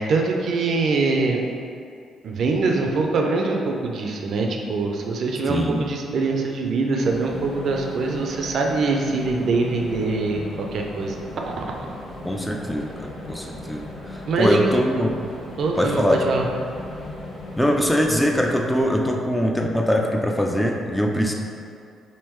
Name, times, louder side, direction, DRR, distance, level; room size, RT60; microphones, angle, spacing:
voice 1, 0.0-1.4 2.2-11.8 14.3-14.6 15.6-16.5, right 3 dB, 60° right, 1 dB, 0.4 m, -23 dB
voice 2, 5.5-5.8 12.2-15.1 15.8-16.2 17.5-21.3, equal, 5° left, 1 dB, 0.3 m, -22 dB
sound 1, 7.0-19.4, left 1 dB, 50° left, 1.2 m, -37 dB
3.5 x 2.6 x 3.0 m, 2.3 s
cardioid pair, 90°, 0 cm